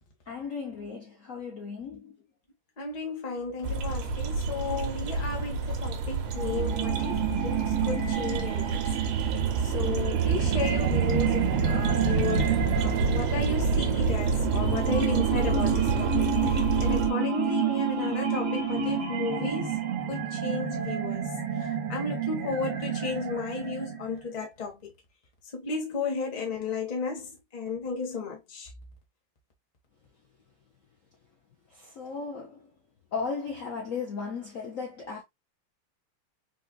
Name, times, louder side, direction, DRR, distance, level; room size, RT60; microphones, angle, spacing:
voice 1, 0.3-2.2 31.7-32.7 33.1-35.2, left 5 dB, 55° left, 1.0 m, -36 dB
voice 2, 2.8-19.8 20.1-24.9 25.5-28.7, left 4 dB, 30° left, 0.8 m, -34 dB
sound 1, 3.6-17.1, right 5 dB, 85° right, 1.6 m, -28 dB
sound 2, 6.3-24.3, right 6 dB, 65° right, 1.8 m, -30 dB
4.3 x 2.4 x 2.3 m
omnidirectional pair, 2.4 m